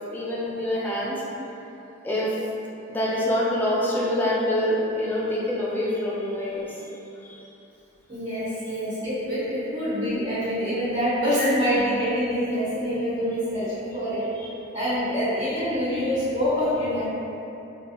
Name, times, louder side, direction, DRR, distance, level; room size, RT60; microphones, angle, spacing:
voice 1, 0.1-1.2 2.0-2.3 2.9-6.8 7.2-7.4 10.2-10.3 11.4-11.5 14.4-14.5, left 1 dB, 10° left, -7 dB, 0.3 m, -26 dB
voice 2, 8.1-14.3 14.7-17.0, equal, 85° right, -15 dB, 1.1 m, -25 dB
2.3 x 2.2 x 2.8 m, 3.0 s
head